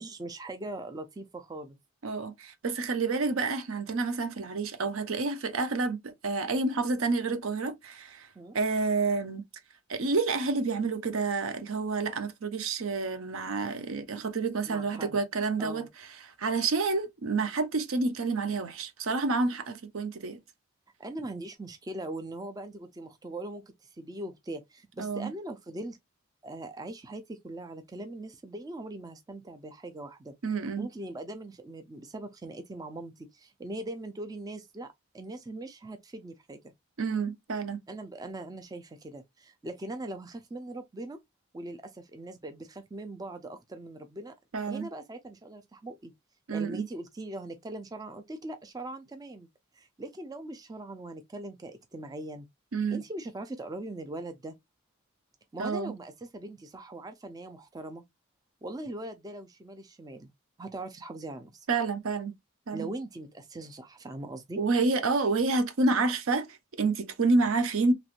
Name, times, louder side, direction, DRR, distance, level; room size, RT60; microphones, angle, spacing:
voice 1, 0.0-1.8 8.4-8.6 14.7-15.2 15.6-15.9 21.0-26.0 26.4-30.3 30.8-36.6 37.9-41.2 41.5-44.3 44.7-46.1 46.5-49.5 49.7-52.5 52.9-54.5 55.5-58.0 58.6-60.3 60.6-61.7 62.7-64.6, right 2 dB, 20° right, 0.4 m, -41 dB
voice 2, 2.0-8.3 8.5-9.4 9.9-15.9 16.4-20.4 25.0-25.3 30.4-30.9 37.0-37.8 44.5-44.9 46.5-46.9 52.7-53.0 55.6-55.9 61.7-62.3 62.7-62.9 64.6-67.9, right 3 dB, 75° right, 0.6 m, -29 dB
3.0 x 2.9 x 2.4 m
head